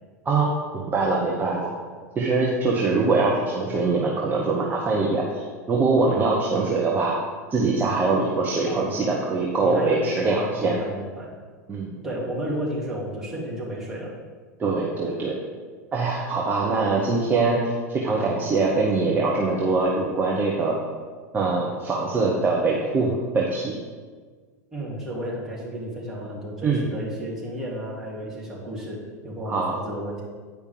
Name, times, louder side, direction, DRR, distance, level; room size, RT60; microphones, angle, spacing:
voice 1, 0.9-1.7 2.1-7.2 7.5-10.8 11.7-11.9 14.6-15.4 15.9-17.6 17.9-20.8 21.3-23.7 26.6-26.8 29.5-29.7, right 3 dB, 20° right, -2 dB, 1.1 m, -23 dB
voice 2, 2.7-3.0 8.7-8.9 9.6-11.3 12.0-14.1 24.7-30.2, equal, 5° right, -7 dB, 2.7 m, -32 dB
9.4 x 5.1 x 5.0 m, 1.5 s
figure-of-eight pair, 85°, 9 cm